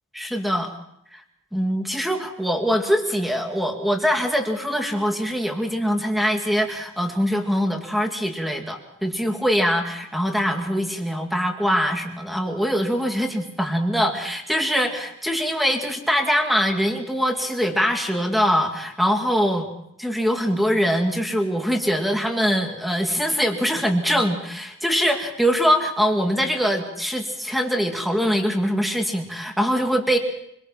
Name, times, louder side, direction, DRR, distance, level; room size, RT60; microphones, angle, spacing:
voice 1, 0.1-0.7 1.1-1.2 1.5-19.7 20.0-30.2, equal, ahead, 3 dB, 2.3 m, -23 dB
25.0 x 22.5 x 5.9 m, 0.77 s
head